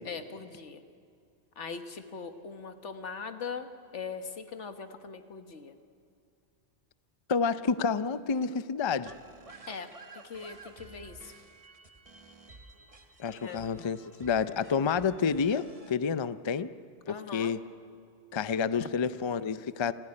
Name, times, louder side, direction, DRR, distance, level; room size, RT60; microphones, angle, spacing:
voice 1, 0.0-0.8 1.6-5.7 9.7-11.3 13.4-13.6 17.0-17.5, left 5 dB, 85° left, 8 dB, 1.6 m, -41 dB
voice 2, 7.3-9.1 13.2-16.7 17.1-17.6 18.3-19.9, left 6 dB, 35° left, 13 dB, 0.5 m, -29 dB
sound 1, 9.1-15.9, right 3 dB, 30° right, 1.1 m, -52 dB
27.0 x 15.5 x 9.7 m, 2.4 s
omnidirectional pair, 1.2 m